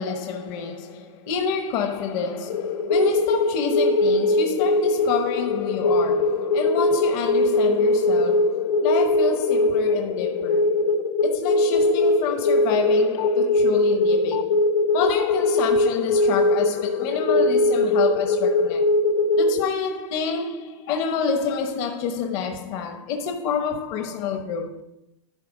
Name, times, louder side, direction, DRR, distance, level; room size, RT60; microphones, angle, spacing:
voice 1, 0.0-14.6 14.9-18.9 19.4-24.8, left 6 dB, 45° left, 0.9 m, -28 dB
sound 1, 2.5-19.7, left 2 dB, 75° left, 0.6 m, -21 dB
11.0 x 4.1 x 5.1 m
supercardioid pair, 150°, 17 cm